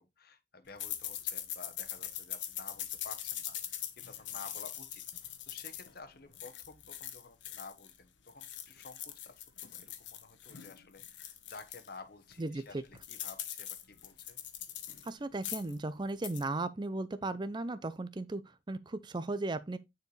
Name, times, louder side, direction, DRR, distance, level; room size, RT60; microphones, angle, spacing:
voice 1, 0.0-5.0 5.4-14.4, left 4 dB, 50° left, 1.0 m, -52 dB
sound 1, 0.8-8.0 8.3-11.9 12.3-12.4 12.7-15.1 15.4-15.8 16.1-16.4, left 11 dB, 75° left, 1.1 m, -42 dB
voice 2, 12.4-12.8 15.0-18.4 18.7-19.8, right 2 dB, 25° right, 0.5 m, -36 dB
9.4 x 4.5 x 3.2 m
head